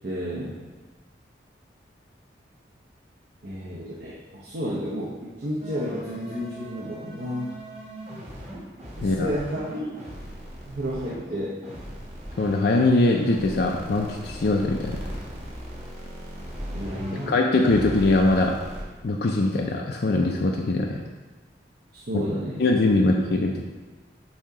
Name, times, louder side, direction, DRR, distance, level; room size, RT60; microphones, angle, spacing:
voice 1, 0.0-0.6 3.4-7.5 9.0-10.1 10.7-11.6 16.7-17.3 21.9-22.7, equal, 60° right, -5 dB, 0.8 m, -31 dB
sound 1, 5.6-11.2 11.6-17.3 17.6-18.8, equal, 35° right, 1.4 m, -38 dB
voice 2, 12.4-15.0 17.3-18.6 19.0-21.0 22.1-22.2 22.6-23.6, left 2 dB, 60° left, 0 dB, 0.4 m, -22 dB
7.3 x 2.8 x 4.7 m, 1.3 s
head